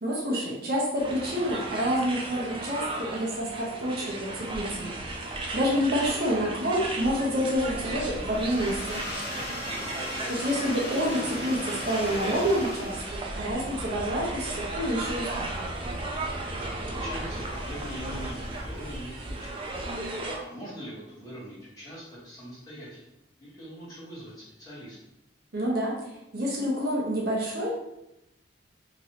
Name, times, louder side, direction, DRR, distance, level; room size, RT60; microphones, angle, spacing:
voice 1, 0.0-5.0 5.3-9.0 10.3-13.0 13.3-15.5 25.5-27.7, equal, 55° right, -4 dB, 0.7 m, -28 dB
sound 1, 1.0-20.4, right 2 dB, 25° right, 0.3 m, -35 dB
sound 2, 7.6-19.0, left 1 dB, 55° left, 0.7 m, -39 dB
voice 2, 9.6-10.0 16.5-19.5 19.9-23.1 23.4-25.0, equal, 20° left, -10 dB, 1.3 m, -43 dB
3.0 x 2.6 x 2.8 m, 0.85 s
head